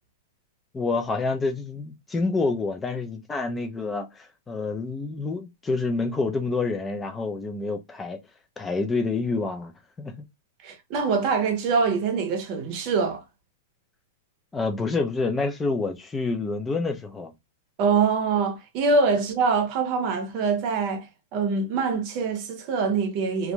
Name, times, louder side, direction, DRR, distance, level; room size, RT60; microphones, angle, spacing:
voice 1, 0.7-8.2 8.6-9.7 10.0-10.1 14.5-17.3, left 3 dB, 10° left, 0.4 m, -28 dB
voice 2, 10.6-13.2 17.8-23.5, right 5 dB, 35° right, 0.7 m, -24 dB
2.4 x 2.2 x 2.9 m
supercardioid pair, 170°, 0 cm